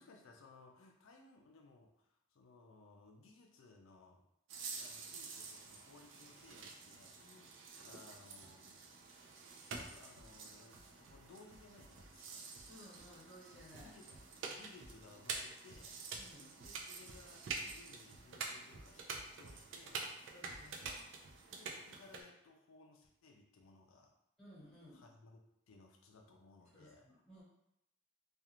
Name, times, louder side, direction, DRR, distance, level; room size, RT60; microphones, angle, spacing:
voice 1, 0.0-4.2 4.7-7.5 7.8-8.8 9.8-12.5 13.8-14.1 14.4-16.0 16.5-20.1 21.5-24.2 24.9-25.4 25.7-27.1, left 3 dB, 75° left, 2 dB, 0.4 m, -61 dB
sound 1, 4.5-22.2, right 4 dB, 65° right, 0.4 m, -48 dB
voice 2, 12.7-13.9 16.2-16.5 20.3-21.0 24.4-25.0 26.7-27.4, equal, 5° left, -10 dB, 1.1 m, -58 dB
2.4 x 2.3 x 2.9 m, 0.79 s
head